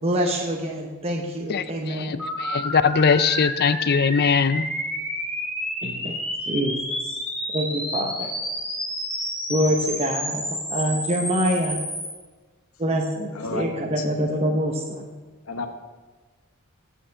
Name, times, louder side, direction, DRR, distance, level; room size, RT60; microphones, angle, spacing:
voice 1, 0.0-2.2 5.8-6.7 7.0-7.2 7.5-8.3 9.5-11.8 12.8-15.1, equal, 30° right, 0 dB, 0.8 m, -26 dB
voice 2, 1.5-4.7, left 6 dB, 45° left, 14 dB, 0.4 m, -21 dB
sound 1, 2.2-12.1, equal, 5° left, 1.9 m, -30 dB
voice 3, 13.3-14.1 15.4-15.7, left 3 dB, 65° left, 7 dB, 0.9 m, -32 dB
8.5 x 5.5 x 7.4 m, 1.3 s
head